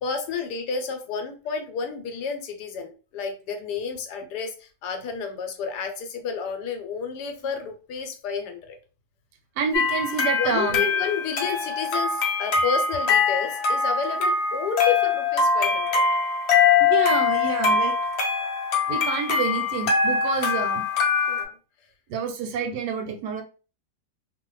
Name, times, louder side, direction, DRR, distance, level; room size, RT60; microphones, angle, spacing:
voice 1, 0.0-8.8 10.4-16.1 21.3-21.6, left 6 dB, 80° left, 6 dB, 1.2 m, -31 dB
voice 2, 9.6-10.9 16.8-17.9 18.9-20.8 22.1-23.4, right 6 dB, 85° right, 4 dB, 1.2 m, -28 dB
sound 1, 9.7-21.4, left 5 dB, 55° left, 0.8 m, -23 dB
2.7 x 2.4 x 3.0 m, 0.36 s
omnidirectional pair, 1.7 m